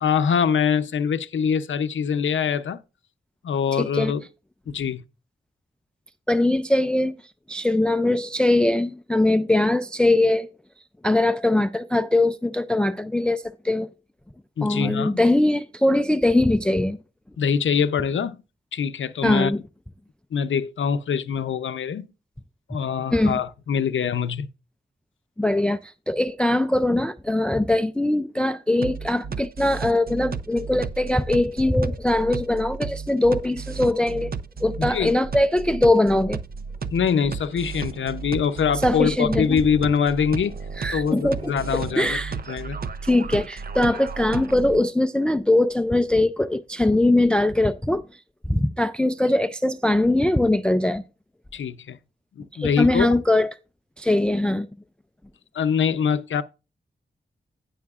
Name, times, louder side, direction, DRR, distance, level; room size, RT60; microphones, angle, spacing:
voice 1, 0.0-2.8 3.4-4.2 4.7-5.0 14.6-15.2 17.4-18.4 18.7-19.5 20.3-22.1 22.7-24.5 34.8-35.1 36.9-40.6 40.9-42.2 42.5-42.8 51.5-52.0 52.4-53.1 55.5-56.4, left 7 dB, 85° left, 0.7 m, -24 dB
voice 2, 3.8-4.1 6.3-7.1 7.5-10.5 11.0-13.9 14.6-17.0 19.2-19.6 23.1-23.4 25.4-34.3 34.6-36.4 38.8-39.6 40.8-42.3 43.0-48.0 48.5-51.0 52.5-53.5 54.0-54.7, left 1 dB, 5° left, 0.3 m, -21 dB
sound 1, 28.8-44.8, right 5 dB, 50° right, 0.6 m, -33 dB
16.5 x 5.7 x 2.4 m
wide cardioid pair, 125°, 19 cm